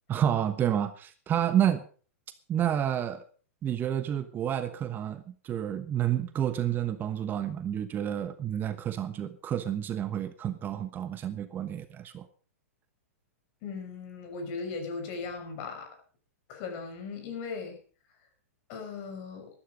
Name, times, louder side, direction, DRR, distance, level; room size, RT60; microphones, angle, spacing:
voice 1, 0.1-1.8 2.5-3.3 3.6-12.3, right 10 dB, 25° right, 11 dB, 1.1 m, -29 dB
voice 2, 13.6-15.9 16.5-17.8 18.7-19.5, left 4 dB, 45° left, 6 dB, 5.6 m, -38 dB
13.0 x 13.0 x 5.2 m, 0.40 s
hypercardioid pair, 115°, 8 cm